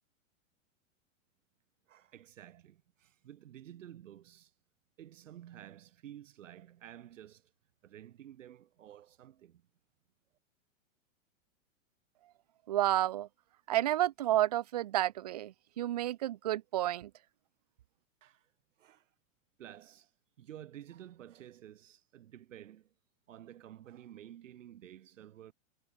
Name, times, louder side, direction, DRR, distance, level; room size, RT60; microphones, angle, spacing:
voice 1, 1.9-4.5 5.0-7.5 7.8-9.6 18.2-18.5 18.8-19.1 19.6-20.1 20.4-22.9 23.3-25.5, right 11 dB, 70° right, 3.8 m, -52 dB
voice 2, 12.7-13.3 13.7-17.1, right 13 dB, 30° right, 0.5 m, -30 dB
supercardioid pair, 175°, 40 cm